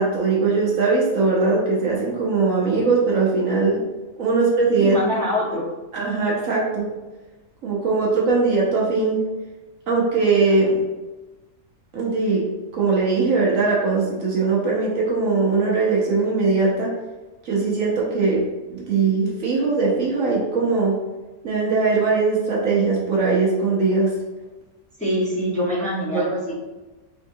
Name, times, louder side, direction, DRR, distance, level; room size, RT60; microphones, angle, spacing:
voice 1, 0.0-3.8 4.2-5.0 5.9-6.9 7.6-9.2 9.9-10.8 11.9-12.4 12.7-16.9 17.4-18.4 18.7-21.0 21.4-24.1, right 4 dB, 65° right, -4 dB, 1.2 m, -20 dB
voice 2, 4.8-5.6 25.0-26.5, left 1 dB, 5° left, -9 dB, 1.2 m, -24 dB
3.8 x 3.5 x 2.7 m, 1.2 s
omnidirectional pair, 1.6 m